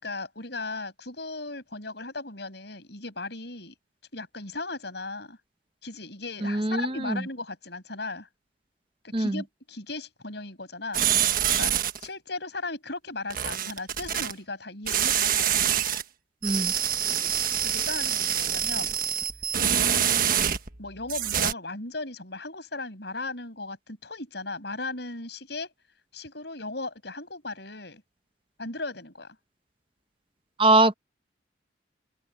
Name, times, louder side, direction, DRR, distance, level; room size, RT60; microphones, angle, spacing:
voice 1, 0.0-3.7 4.1-5.4 5.8-8.3 9.0-11.1 11.6-11.7 12.0-15.6 17.1-18.9 19.6-20.3 20.8-25.7 26.1-28.0 28.6-29.4, left 3 dB, 60° left, 7.8 m, -37 dB
voice 2, 6.4-7.2 9.1-9.4 16.4-16.7 30.6-30.9, right 2 dB, 30° right, 0.8 m, -22 dB
sound 1, 10.9-12.1 13.3-14.3 14.9-16.0 16.4-20.8 21.1-21.5, right 9 dB, 50° right, 1.5 m, -25 dB
open air
head